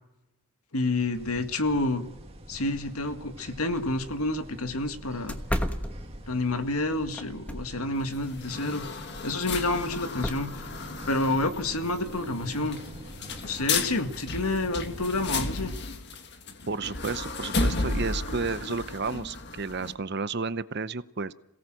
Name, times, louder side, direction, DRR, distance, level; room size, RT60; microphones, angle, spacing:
voice 1, 0.7-2.0 2.5-5.4 6.3-8.9 9.2-10.5 11.1-12.8 13.4-15.7, left 2 dB, 80° left, 7 dB, 2.0 m, -29 dB
sound 1, 1.1-15.8, equal, 25° right, 2.0 m, -46 dB
sound 2, 3.7-3.8 4.2-4.3 4.7-4.8 5.3-6.5 7.1-7.9 9.9-10.3, equal, 5° left, 1.2 m, -32 dB
sound 3, 7.9-19.9, left 3 dB, 50° left, 1.8 m, -34 dB
voice 2, 16.7-21.3, right 4 dB, 50° right, 15 dB, 0.7 m, -32 dB
27.5 x 17.5 x 7.6 m, 0.95 s
head